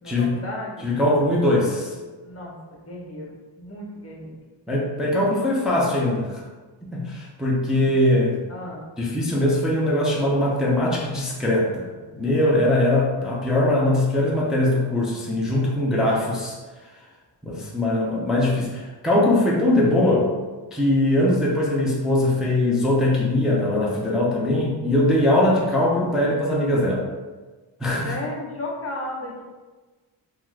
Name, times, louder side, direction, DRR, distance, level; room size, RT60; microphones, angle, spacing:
voice 1, 0.0-0.9 2.2-4.4 8.5-8.8 28.0-29.4, left 1 dB, 30° left, -3 dB, 0.8 m, -34 dB
voice 2, 0.8-2.0 4.7-6.4 6.8-8.4 9.0-16.6 17.4-20.3 20.7-27.0 27.8-28.2, left 1 dB, ahead, -4 dB, 0.4 m, -21 dB
2.6 x 2.4 x 3.2 m, 1.3 s
wide cardioid pair, 120°, 47 cm